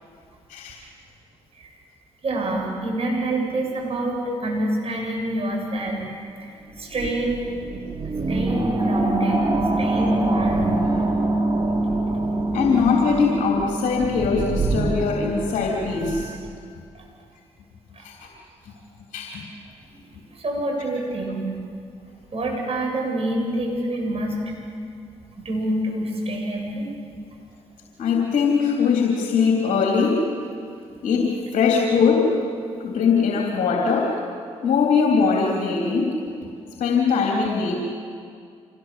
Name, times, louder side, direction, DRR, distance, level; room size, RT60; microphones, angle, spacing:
voice 1, 2.2-6.1 6.4-7.4 8.3-9.5 9.8-11.0 16.9-17.1 17.9-18.0 20.0-21.4 22.3-24.4 25.4-26.9, right 1 dB, 45° right, 0 dB, 7.9 m, -27 dB
sound 1, 6.8-16.4, right 2 dB, 30° right, 4.1 m, -24 dB
voice 2, 12.5-16.3 18.0-18.2 19.1-19.4 28.0-30.2 31.0-32.3 32.8-34.2 34.6-36.5 36.8-37.7, left 5 dB, 65° left, -1 dB, 3.4 m, -21 dB
26.0 x 19.5 x 7.7 m, 2.2 s
hypercardioid pair, 45°, 14 cm